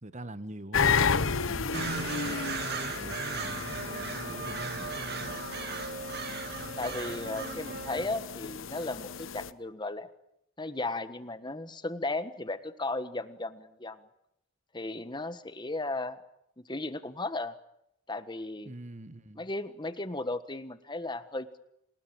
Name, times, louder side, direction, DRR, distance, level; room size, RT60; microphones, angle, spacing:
voice 1, 0.0-5.4 18.6-19.5, right 1 dB, 35° right, 1.3 m, -44 dB
sound 1, 0.7-9.5, left 6 dB, 70° left, 0.9 m, -33 dB
sound 2, 1.7-8.1, right 4 dB, 50° right, 2.1 m, -37 dB
voice 2, 6.8-10.1 10.6-14.0 14.7-16.2 16.6-17.5 18.1-18.7 19.4-21.6, left 2 dB, 20° left, 1.4 m, -35 dB
29.0 x 20.0 x 9.0 m
head